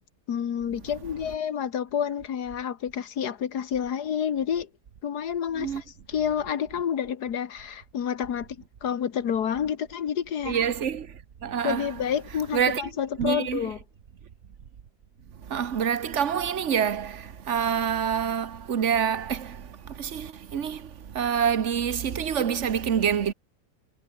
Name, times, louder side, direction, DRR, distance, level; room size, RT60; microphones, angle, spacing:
voice 1, 0.3-4.7 5.0-8.5 8.8-10.6 11.6-13.8, left 8 dB, 80° left, 1.9 m, -29 dB
voice 2, 10.4-11.1 11.4-11.9 12.5-12.8 13.2-13.7 15.5-19.7 19.9-20.9 21.1-23.3, right 8 dB, 50° right, 1.4 m, -26 dB
omnidirectional pair, 1.7 m